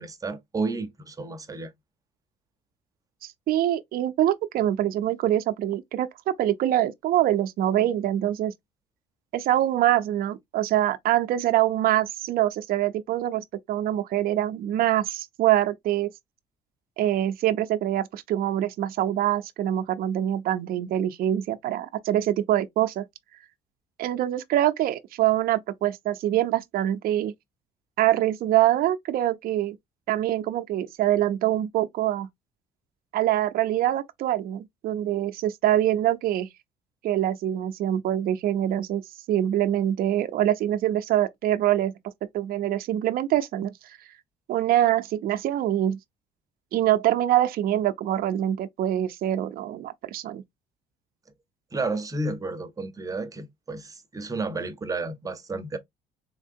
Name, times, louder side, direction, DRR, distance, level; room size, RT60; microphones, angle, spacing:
voice 1, 0.0-1.7 51.7-55.8, right 3 dB, 20° right, 0.7 m, -31 dB
voice 2, 3.2-6.1 6.4-8.5 9.3-16.1 17.0-23.0 24.0-27.3 28.0-29.8 30.1-32.3 33.1-36.5 37.0-39.0 39.3-41.9 42.3-44.0 44.5-46.0 46.7-50.4, right 12 dB, 60° right, 0.5 m, -24 dB
3.5 x 3.2 x 2.6 m
cardioid pair, 110°, 17 cm